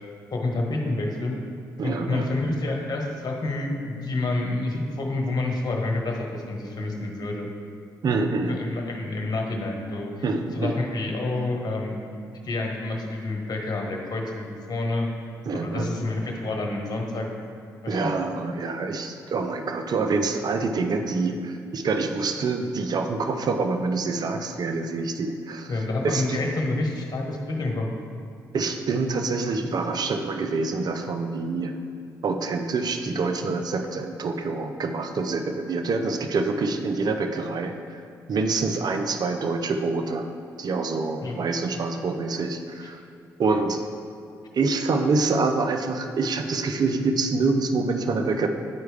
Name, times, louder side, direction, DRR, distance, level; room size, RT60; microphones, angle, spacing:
voice 1, 0.3-1.4 1.8-7.5 8.5-10.1 10.5-12.0 12.4-15.1 15.5-17.3 17.8-18.1 25.7-27.9 41.2-41.4, left 2 dB, 50° left, 1 dB, 1.3 m, -28 dB
voice 2, 1.8-2.3 8.0-8.6 10.2-10.8 15.5-15.9 17.9-26.4 28.5-31.7 32.2-38.0 38.3-40.3 40.6-43.0 43.4-43.8 44.5-48.5, right 3 dB, 55° right, 6 dB, 0.6 m, -26 dB
9.5 x 4.6 x 3.4 m, 2.4 s
hypercardioid pair, 50°, 8 cm